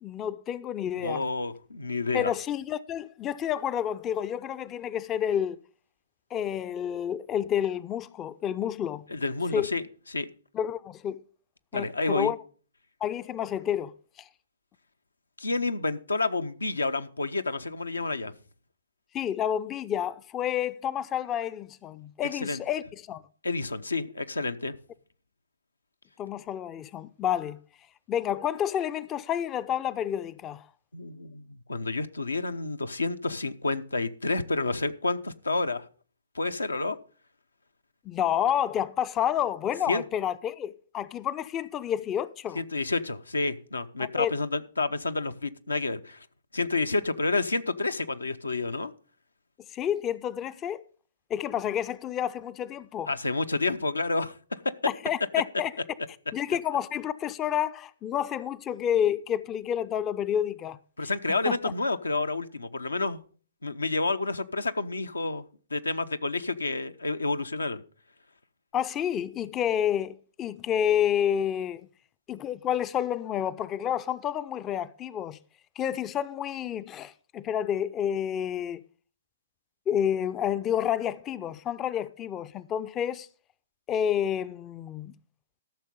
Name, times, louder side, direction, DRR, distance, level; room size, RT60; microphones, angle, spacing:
voice 1, 0.0-1.2 2.1-5.6 6.3-9.0 9.5-9.7 10.5-11.2 11.7-12.4 13.0-14.3 19.1-23.2 26.2-27.6 28.1-30.7 38.1-42.6 44.0-44.3 49.7-50.8 51.3-53.1 54.9-55.7 56.3-61.1 61.5-61.6 68.7-71.9 72.3-75.4 75.8-78.8 79.9-83.3 83.9-85.1, left 9 dB, 25° left, 0.4 m, -29 dB
voice 2, 1.0-2.3 9.1-9.8 10.1-10.3 11.7-12.3 15.4-18.3 22.3-22.6 23.4-24.7 30.9-35.9 36.3-37.0 39.9-40.0 42.5-46.3 46.5-48.9 53.1-54.7 61.0-63.2 63.6-65.5 65.7-67.8, left 3 dB, 80° left, 0.8 m, -29 dB
13.5 x 6.5 x 5.3 m
figure-of-eight pair, 120°, 0 cm